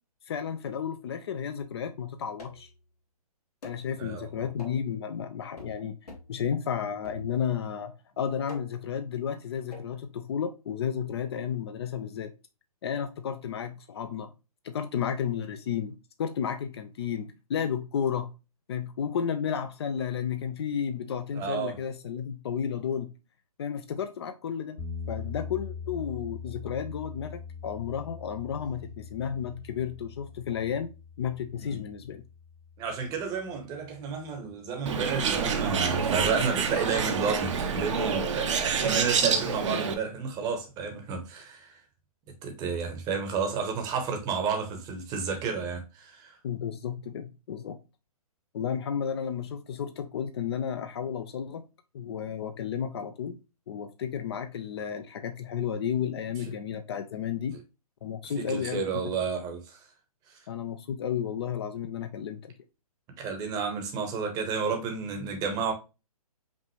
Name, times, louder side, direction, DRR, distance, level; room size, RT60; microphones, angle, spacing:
voice 1, 0.3-2.7 3.6-6.0 6.3-12.3 12.8-14.3 14.6-18.3 18.7-23.1 23.6-24.8 25.1-30.9 31.2-32.2 46.4-47.8 48.5-51.6 51.9-53.4 53.7-57.6 58.0-58.8 60.5-62.5, left 8 dB, 40° left, 0.5 m, -32 dB
sound 1, 2.4-2.8 3.6-3.9 4.6-4.9 5.6-5.8 6.1-6.4 7.0-7.6 8.5-8.9 9.7-9.9, left 1 dB, 75° left, 1.6 m, -46 dB
voice 2, 4.0-4.3 21.3-21.7 31.6-31.8 32.8-41.8 42.4-46.4 58.4-59.8 63.2-65.7, right 5 dB, 20° right, 0.9 m, -31 dB
sound 2, 24.8-34.8, left 5 dB, 60° left, 1.8 m, -43 dB
Bird, 34.9-39.9, right 6 dB, 50° right, 0.7 m, -27 dB
5.2 x 2.5 x 3.0 m
figure-of-eight pair, 135°, 20 cm